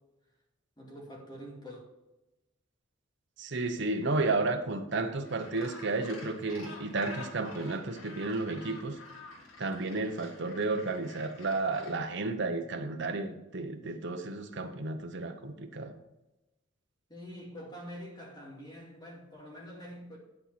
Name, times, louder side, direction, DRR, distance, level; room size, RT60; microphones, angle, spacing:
voice 1, 0.8-1.8 17.1-20.2, equal, 20° left, 2.4 m, -45 dB
voice 2, 3.4-9.0 9.6-15.9, right 3 dB, 60° right, 0.9 m, -32 dB
Gull seagull, 5.2-12.0, left 3 dB, 80° left, 2.0 m, -48 dB
11.0 x 4.2 x 5.9 m
head